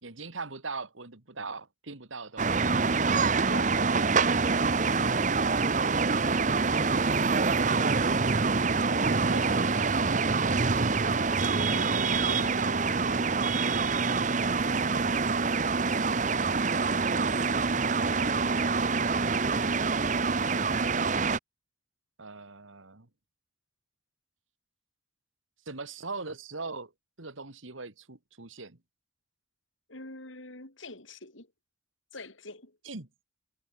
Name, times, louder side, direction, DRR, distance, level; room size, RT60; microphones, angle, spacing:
voice 1, 0.0-2.8 7.5-7.9 9.1-10.1 20.0-20.6 22.2-23.1 25.7-26.9 27.2-28.8 32.8-33.1, right 3 dB, 85° right, 2.3 m, -42 dB
sound 1, 2.4-21.4, right 4 dB, 40° right, 0.8 m, -26 dB
voice 2, 3.5-3.8 11.7-13.5 29.9-31.5 32.1-32.8, left 2 dB, 85° left, 5.1 m, -45 dB
head